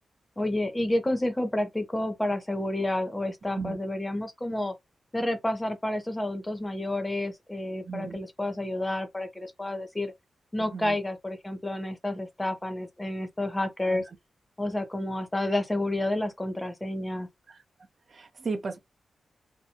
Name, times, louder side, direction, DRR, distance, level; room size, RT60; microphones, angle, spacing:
voice 1, 0.4-4.7 5.1-10.1 10.5-14.0 14.6-17.3, left 1 dB, 10° left, 0.5 m, -30 dB
voice 2, 7.8-8.2 10.7-11.0 13.9-14.0 17.5-17.6 18.1-18.8, right 4 dB, 40° right, 0.6 m, -35 dB
2.7 x 2.2 x 2.7 m
wide cardioid pair, 165°, 0 cm